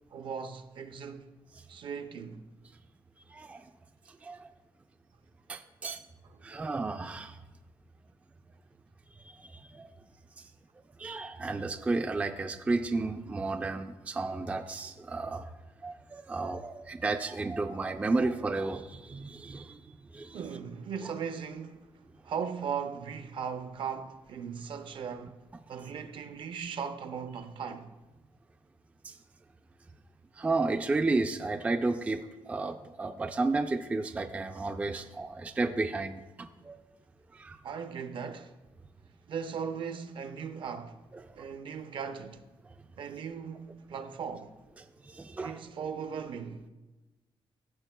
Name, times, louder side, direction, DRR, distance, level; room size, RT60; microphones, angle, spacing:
voice 1, 0.1-1.3 1.7-2.4 20.3-21.9 22.2-25.4 25.7-27.9 37.6-38.5 39.3-41.0 41.3-42.4 43.0-44.5 45.4-46.7, right 6 dB, 60° right, 0.6 m, -38 dB
voice 2, 3.3-3.7 4.1-4.5 5.5-6.0 6.4-7.4 9.2-9.9 10.4-10.5 11.0-15.5 15.8-20.4 29.0-29.2 30.4-36.8 37.3-37.6 41.1-41.2 44.8-45.6, right 3 dB, 15° right, 0.3 m, -33 dB
14.0 x 7.0 x 2.2 m
cardioid pair, 115°, 10 cm